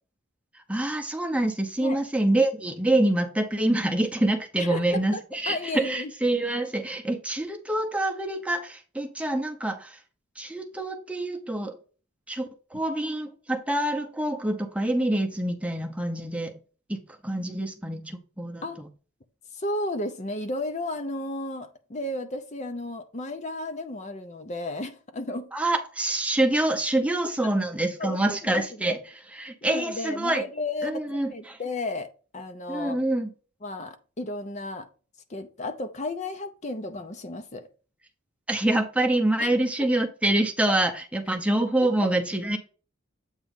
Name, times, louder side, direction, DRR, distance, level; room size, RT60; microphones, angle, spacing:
voice 1, 0.5-10.0 10.4-11.8 12.3-16.5 16.9-17.0 17.2-18.9 25.5-29.0 29.3-30.5 30.8-31.6 32.7-33.3 38.5-42.6, right 1 dB, 5° right, 0.7 m, -26 dB
voice 2, 4.6-5.2 5.5-6.1 18.6-18.8 19.5-25.5 28.0-28.9 29.6-33.0 33.6-34.9 35.3-37.7 39.4-39.5, left 2 dB, 35° left, 0.6 m, -33 dB
8.1 x 3.1 x 5.3 m
head